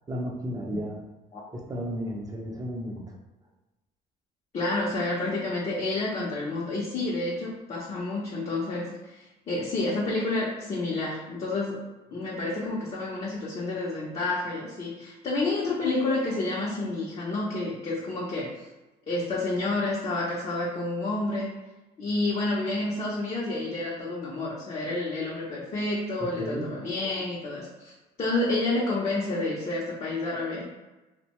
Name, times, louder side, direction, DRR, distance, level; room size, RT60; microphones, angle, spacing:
voice 1, 0.1-1.0 1.5-3.1 26.2-26.7, equal, 20° right, 0 dB, 0.5 m, -33 dB
voice 2, 4.5-11.8 12.1-18.7 19.1-21.5 22.0-27.9 28.2-30.6, left 2 dB, 35° left, -5 dB, 0.6 m, -29 dB
2.6 x 2.1 x 2.9 m, 1.1 s
cardioid pair, 110°, 17 cm